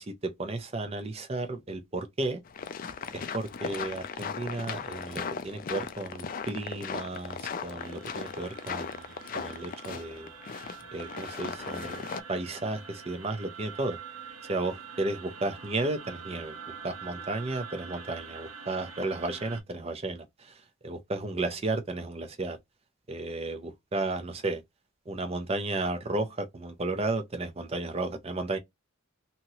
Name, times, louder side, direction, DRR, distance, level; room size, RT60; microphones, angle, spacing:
voice 1, 0.0-2.4 3.1-10.3 10.9-14.0 14.5-16.6 16.8-22.6 23.1-24.6 25.1-28.6, right 2 dB, 30° right, 0.5 m, -33 dB
sound 1, 2.5-12.2, left 6 dB, 40° left, 0.3 m, -37 dB
sound 2, 7.8-19.6, right 6 dB, 75° right, 1.0 m, -45 dB
2.9 x 2.8 x 2.7 m
head